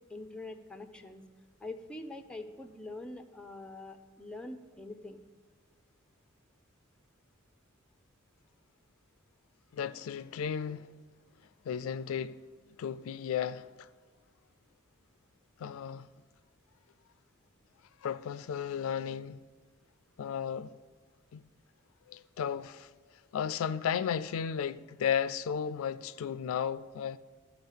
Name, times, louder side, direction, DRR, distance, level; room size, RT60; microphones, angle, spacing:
voice 1, 0.1-1.2 1.6-5.2, left 2 dB, 5° left, 0.6 m, -44 dB
voice 2, 9.7-10.9 11.6-12.4 12.8-13.9 15.6-16.1 18.0-19.4 20.2-20.7 21.3-21.4 22.1-22.9 23.3-27.2, left 8 dB, 80° left, 0.3 m, -34 dB
12.5 x 4.7 x 8.1 m
head